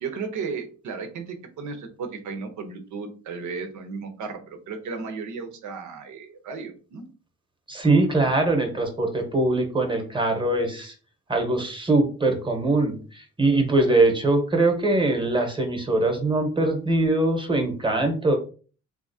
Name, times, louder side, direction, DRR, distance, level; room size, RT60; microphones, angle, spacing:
voice 1, 0.0-7.0, right 5 dB, 75° right, 6 dB, 0.8 m, -34 dB
voice 2, 7.7-10.9 11.3-18.4, right 2 dB, 15° right, 4 dB, 1.0 m, -22 dB
3.5 x 2.8 x 2.7 m, 0.38 s
cardioid pair, 90°, 30 cm